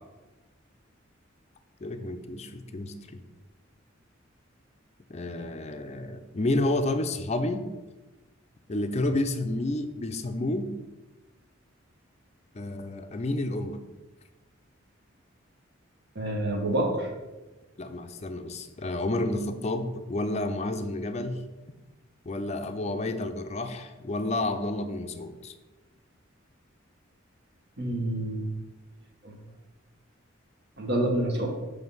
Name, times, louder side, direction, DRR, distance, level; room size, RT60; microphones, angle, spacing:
voice 1, 1.8-3.2 5.1-7.7 8.7-10.7 12.5-13.8 17.8-21.4 22.3-25.5, left 2 dB, 35° left, 8 dB, 0.5 m, -30 dB
voice 2, 16.1-17.1 27.8-28.5 29.2-29.3 30.8-31.5, right 1 dB, 55° right, 1 dB, 1.3 m, -27 dB
7.0 x 3.4 x 5.4 m, 1.1 s
head